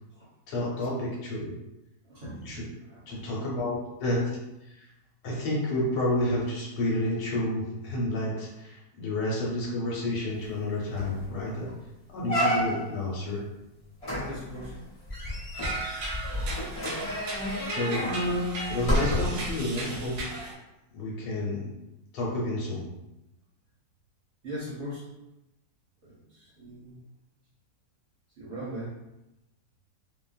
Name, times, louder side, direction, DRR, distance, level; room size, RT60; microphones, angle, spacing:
voice 1, 0.5-1.5 2.5-2.7 3.1-4.2 5.2-11.7 12.1-13.4 17.7-18.0 18.7-20.4 20.9-21.7 22.1-22.8, left 1 dB, 80° left, -4 dB, 1.5 m, -30 dB
voice 2, 2.1-3.2 14.2-14.7 24.4-25.0 26.0-27.0 28.4-29.0, equal, 50° right, -8 dB, 0.9 m, -40 dB
sound 1, 10.5-10.6 11.0-11.3 11.7-11.8 12.3-13.0 14.0-19.5 20.1-20.2, equal, 30° left, 0.6 m, -30 dB
sound 2, 15.5-20.5, right 2 dB, 70° right, 1.1 m, -37 dB
2.8 x 2.4 x 2.4 m, 0.92 s
omnidirectional pair, 1.9 m